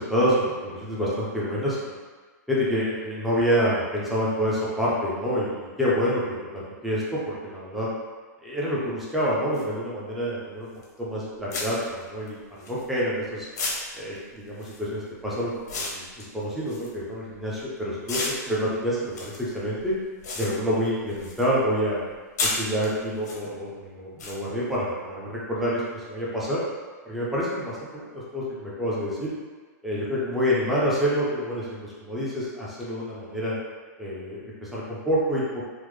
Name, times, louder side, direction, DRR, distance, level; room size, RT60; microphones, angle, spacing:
voice 1, 0.0-1.8 2.5-6.2 6.5-7.9 8.4-10.7 11.0-13.5 13.9-19.9 20.3-22.0 22.4-26.6 27.0-29.3 29.8-33.5 34.0-35.4, equal, ahead, -8 dB, 0.3 m, -27 dB
sound 1, 9.5-9.6 10.8-11.0 11.5-13.2 13.5-17.6 18.0-21.5 21.8-23.4 24.2-24.3, left 3 dB, 70° left, 0.7 m, -33 dB
3.1 x 2.0 x 3.4 m, 1.4 s
supercardioid pair, 180°, 9 cm